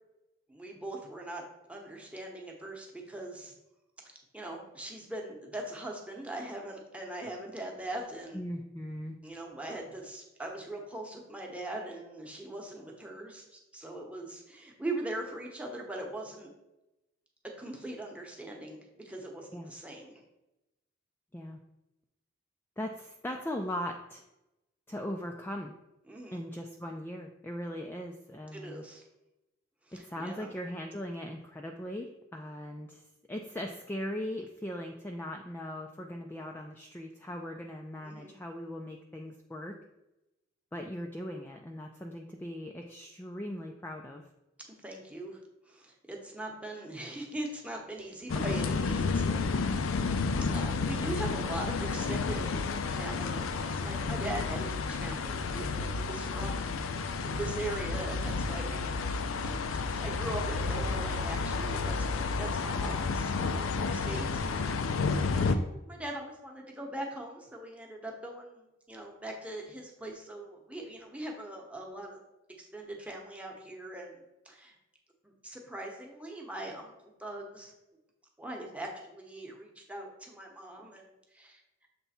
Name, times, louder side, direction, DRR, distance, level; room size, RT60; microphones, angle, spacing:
voice 1, 0.5-1.4 1.7-3.5 4.3-8.4 9.2-16.5 17.6-20.2 26.1-26.4 28.5-29.0 29.9-30.5 38.0-38.4 44.8-45.4 45.7-50.2 50.5-56.7 57.0-58.9 59.3-63.4 63.7-64.9 65.5-72.2 72.6-74.2 74.4-74.7 75.2-77.7 78.4-81.6, right 1 dB, 5° right, 0 dB, 1.0 m, -41 dB
voice 2, 8.3-9.2 19.5-19.7 21.3-21.6 22.8-24.2 24.9-25.7 26.3-28.9 29.9-33.0 33.3-39.8 40.7-44.2 50.0-50.4 65.3-65.5, equal, 10° left, 2 dB, 0.4 m, -39 dB
sound 1, 48.3-65.6, left 4 dB, 80° left, 0.5 m, -31 dB
6.9 x 3.4 x 4.2 m, 0.93 s
head